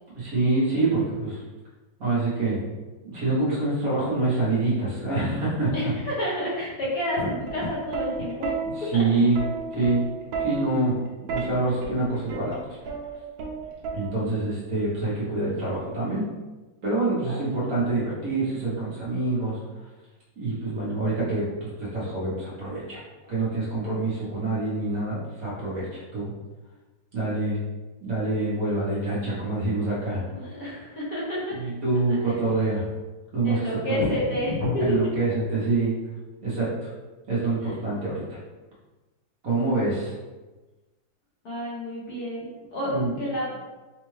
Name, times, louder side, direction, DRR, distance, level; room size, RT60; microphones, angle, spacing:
voice 1, 0.1-1.4 2.0-2.6 3.0-5.9 8.9-9.4 9.7-10.0 10.4-10.9 11.3-12.6 13.9-16.2 16.8-19.6 20.4-23.0 23.3-26.3 27.1-27.6 28.0-30.2 31.6-32.8 33.3-33.6 33.9-34.0 34.8-35.9 36.4-36.9 37.3-38.4 39.4-40.1 42.8-43.1, right 2 dB, 50° right, -8 dB, 1.5 m, -26 dB
voice 2, 5.7-8.6 8.9-9.0 17.3-17.5 30.3-31.6 32.1-32.3 33.4-35.2 37.6-37.7 41.4-43.7, left 1 dB, 55° left, -7 dB, 1.5 m, -29 dB
Plucked string instrument, 7.5-14.5 15.6-15.9, right 5 dB, 85° right, 1.5 m, -33 dB
4.4 x 2.5 x 3.2 m, 1.2 s
omnidirectional pair, 2.1 m